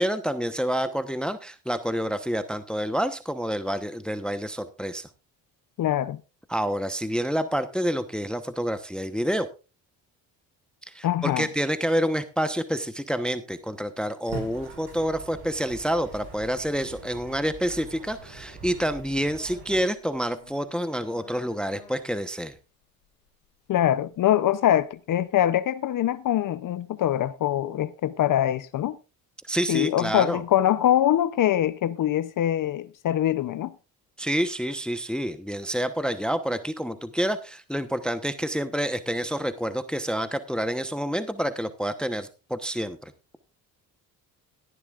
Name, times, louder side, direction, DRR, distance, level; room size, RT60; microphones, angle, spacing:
voice 1, 0.0-5.0 6.5-9.5 10.9-22.5 29.5-30.4 34.2-43.0, equal, ahead, 1.0 m, -28 dB
voice 2, 5.8-6.2 11.0-11.5 23.7-29.0 29.7-33.7, left 12 dB, 55° left, 0.7 m, -23 dB
sound 1, 14.3-19.9, right 4 dB, 75° right, 5.7 m, -42 dB
sound 2, 19.8-24.9, left 10 dB, 80° left, 3.4 m, -55 dB
16.5 x 11.0 x 2.4 m
supercardioid pair, 70°, 40 cm